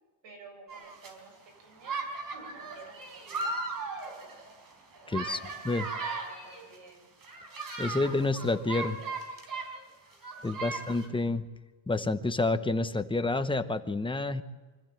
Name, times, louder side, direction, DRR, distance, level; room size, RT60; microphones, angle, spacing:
voice 1, 0.2-2.0 2.3-3.6 5.0-7.1 7.9-8.5 9.0-9.1 10.4-10.9, right 3 dB, 70° right, 3 dB, 7.7 m, -52 dB
sound 1, 0.7-1.1 1.8-6.7 7.2-9.8 10.1-11.1, right 3 dB, 45° right, 4.4 m, -37 dB
voice 2, 5.1-5.4 5.6-5.9 7.8-9.0 10.4-11.5 11.9-14.4, left 2 dB, 10° left, 10 dB, 0.9 m, -29 dB
25.0 x 14.5 x 7.6 m, 1.3 s
cardioid pair, 135°, 46 cm